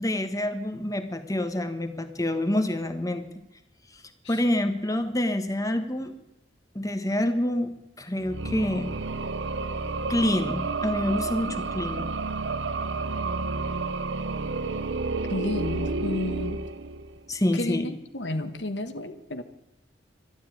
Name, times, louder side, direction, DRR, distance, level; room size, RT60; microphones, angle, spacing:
voice 1, 0.0-3.2 4.3-6.1 6.7-8.9 10.1-12.1 17.3-17.9, left 1 dB, 20° left, 7 dB, 1.5 m, -27 dB
sound 1, 8.2-17.3, right 3 dB, 80° right, 0.8 m, -30 dB
voice 2, 15.3-16.6 17.5-19.4, left 1 dB, 75° left, 9 dB, 1.5 m, -32 dB
12.5 x 12.0 x 9.2 m, 0.89 s
head